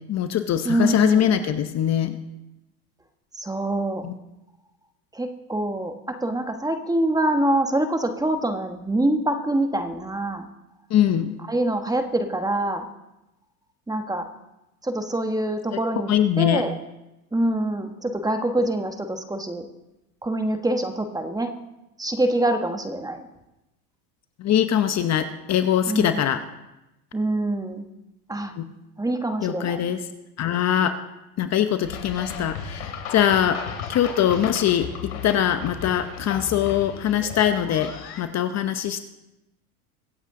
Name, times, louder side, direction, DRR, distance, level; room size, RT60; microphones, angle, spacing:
voice 1, 0.1-2.2 4.0-4.1 10.9-11.4 16.1-16.6 24.4-26.4 28.6-28.7 29.4-30.0 30.4-30.9 31.4-33.6 33.9-34.9 35.2-37.9 38.2-39.0, left 10 dB, 35° left, 9 dB, 0.9 m, -22 dB
voice 2, 0.6-1.3 3.3-4.1 5.1-10.5 11.5-12.8 13.9-14.3 14.8-16.1 16.4-16.8 17.3-19.6 20.2-21.5 22.0-23.3 25.9-26.2 27.1-27.9 28.3-28.5 29.0-29.8, right 1 dB, 10° right, 6 dB, 1.3 m, -25 dB
sound 1, 31.8-38.2, left 7 dB, 80° left, 3.3 m, -35 dB
24.5 x 8.2 x 3.8 m, 0.96 s
supercardioid pair, 105°, 45 cm